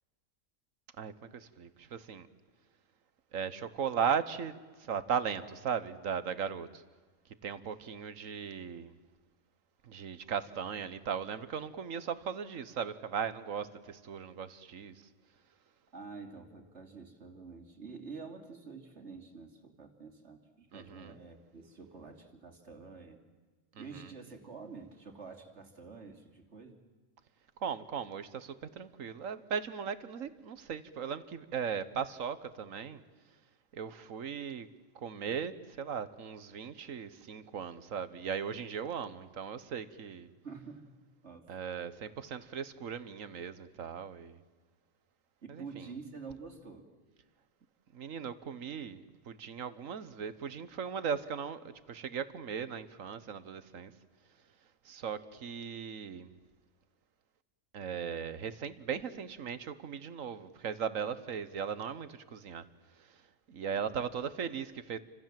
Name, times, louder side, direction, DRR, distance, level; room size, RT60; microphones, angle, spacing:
voice 1, 1.0-2.3 3.3-6.8 7.4-8.9 9.8-15.1 20.7-21.2 23.7-24.1 27.6-33.0 33.7-34.7 35.0-40.3 41.5-44.4 45.5-45.8 47.9-53.9 54.8-56.3 57.7-62.7 63.0-63.2 63.5-65.0, right 7 dB, 80° right, 1.6 m, -38 dB
voice 2, 15.9-23.2 23.8-26.8 40.4-40.9 41.2-41.5 45.4-46.9, right 4 dB, 60° right, 3.2 m, -48 dB
29.0 x 25.5 x 7.6 m
omnidirectional pair, 1.3 m